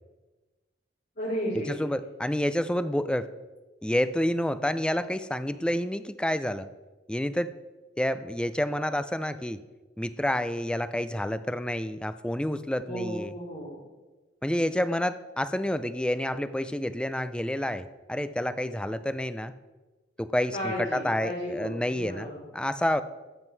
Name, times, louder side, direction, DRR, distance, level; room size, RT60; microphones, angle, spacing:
voice 1, 1.1-1.9 12.9-13.8 20.5-22.5, equal, 55° left, -11 dB, 4.4 m, -34 dB
voice 2, 1.7-3.3 3.8-6.7 7.1-7.5 8.0-9.6 10.0-13.3 14.4-19.5 20.2-22.3 22.5-23.0, left 1 dB, 5° left, 13 dB, 0.4 m, -29 dB
13.0 x 8.0 x 4.6 m, 1.2 s
head